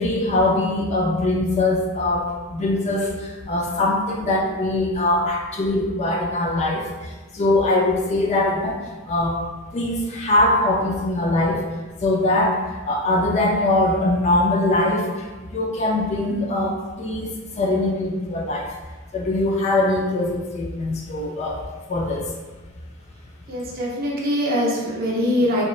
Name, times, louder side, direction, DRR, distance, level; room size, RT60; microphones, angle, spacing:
voice 1, 0.0-6.9 7.3-9.4 9.7-11.6 12.0-12.6 12.9-18.7 19.1-21.6 21.9-22.3, left 2 dB, 35° left, -2 dB, 0.3 m, -22 dB
voice 2, 23.5-25.6, equal, 45° right, -4 dB, 0.6 m, -22 dB
2.9 x 2.1 x 2.3 m, 1.2 s
head